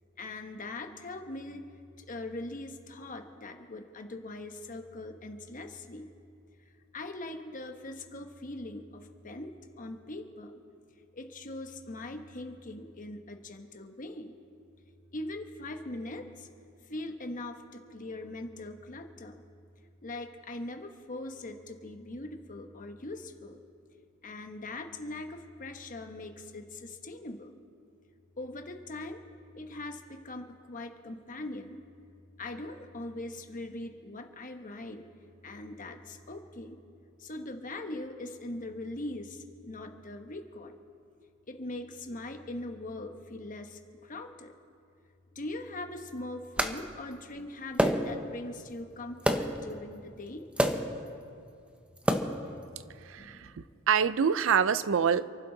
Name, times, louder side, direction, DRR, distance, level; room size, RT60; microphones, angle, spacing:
voice 1, 0.2-1.6 2.0-6.1 6.9-9.5 9.8-10.5 11.2-14.3 15.1-16.3 16.9-19.4 20.0-23.6 24.2-27.5 28.4-29.2 29.6-31.8 32.4-35.0 35.4-36.8 37.2-40.7 41.5-43.8 44.1-44.5 45.4-50.5 53.2-53.5, left 2 dB, 40° left, 5 dB, 1.1 m, -41 dB
sound 1, 46.6-46.8 47.8-48.3 49.3-49.6 50.6-51.0 52.0-52.5, equal, 5° right, 0.7 m, -27 dB
voice 2, 53.1-53.5 53.9-55.3, right 7 dB, 70° right, 16 dB, 0.5 m, -25 dB
28.5 x 11.0 x 3.9 m, 2.4 s
head